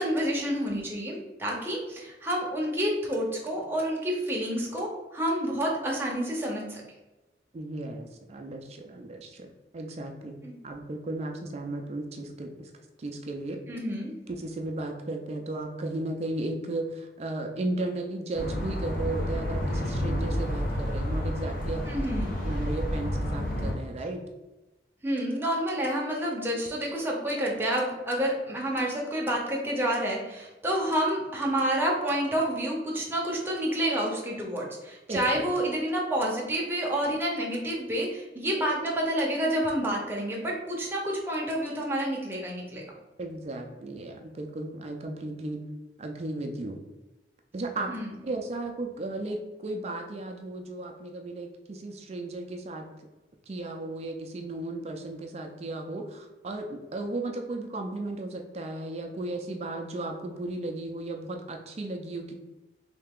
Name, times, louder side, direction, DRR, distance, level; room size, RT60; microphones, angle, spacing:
voice 1, 0.0-6.8 10.4-10.5 13.7-14.1 21.8-22.4 25.0-42.8 47.9-48.1, right 1 dB, 15° right, -2 dB, 0.7 m, -29 dB
voice 2, 7.5-9.5 9.7-10.4 10.6-12.7 13.0-13.6 14.3-21.9 22.4-24.2 35.1-35.2 43.2-45.6 46.0-46.8 47.5-47.9 48.2-52.9 53.5-62.3, right 2 dB, 35° right, 3 dB, 0.4 m, -35 dB
sound 1, 18.3-23.7, equal, 50° left, 0.8 m, -30 dB
3.2 x 2.8 x 3.5 m, 1.1 s
head